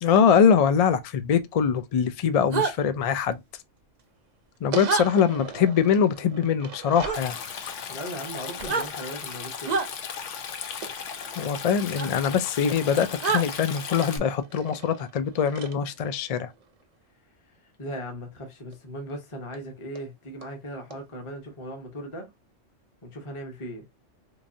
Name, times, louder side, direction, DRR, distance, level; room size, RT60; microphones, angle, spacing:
voice 1, 0.0-3.4 4.6-7.4 11.4-16.5, left 7 dB, 55° left, 0.4 m, -23 dB
sound 1, 2.5-2.7 4.8-5.1 7.0-7.2 8.6-8.9 9.7-9.9 12.0-12.1 13.2-13.4, right 4 dB, 45° right, 0.6 m, -25 dB
sound 2, 4.7-7.3 10.8-12.2 12.7-16.8 18.7-18.8 19.1-19.2 19.5-19.6 20.0-20.1 20.4-20.5 20.9-21.0, right 7 dB, 90° right, 1.1 m, -42 dB
Stream, 7.1-14.2, left 7 dB, 80° left, 1.0 m, -36 dB
voice 2, 7.9-9.7 17.4-22.3 23.0-23.8, equal, 25° left, 1.0 m, -38 dB
4.6 x 2.6 x 2.6 m
omnidirectional pair, 1.2 m